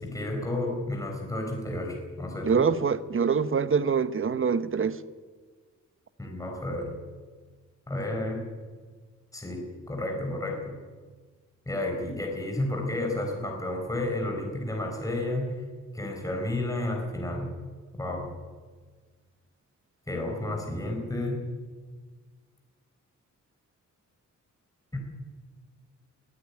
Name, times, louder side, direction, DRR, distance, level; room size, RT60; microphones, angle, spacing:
voice 1, 0.0-2.6 6.2-6.9 7.9-8.4 9.3-10.8 11.7-15.5 15.9-17.5 18.0-18.3 20.1-21.4 24.9-25.0, left 1 dB, 10° left, 1 dB, 4.6 m, -31 dB
voice 2, 2.4-5.0, right 6 dB, 40° right, 13 dB, 1.0 m, -25 dB
22.5 x 13.5 x 9.9 m, 1.5 s
wide cardioid pair, 125°, 31 cm